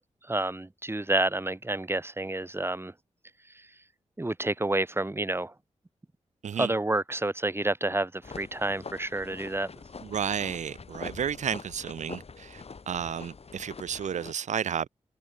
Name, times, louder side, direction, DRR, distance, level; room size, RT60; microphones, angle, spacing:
voice 1, 0.3-2.9 4.2-5.5 6.6-9.7, right 2 dB, 20° right, 1.8 m, -29 dB
sound 1, 8.2-14.3, left 4 dB, 55° left, 5.9 m, -44 dB
voice 2, 10.1-14.9, right 8 dB, 80° right, 0.9 m, -32 dB
cardioid pair, 55°, 12 cm